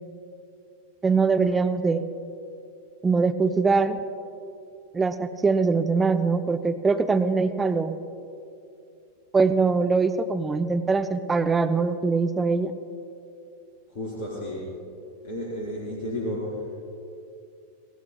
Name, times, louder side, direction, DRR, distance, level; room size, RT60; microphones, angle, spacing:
voice 1, 1.0-2.0 3.0-4.0 4.9-8.0 9.3-12.7, right 4 dB, 15° right, 9 dB, 0.7 m, -22 dB
voice 2, 13.9-14.7 15.2-16.7, left 1 dB, 50° left, -5 dB, 4.1 m, -32 dB
25.5 x 18.5 x 2.3 m, 2.6 s
figure-of-eight pair, 90°, 0 cm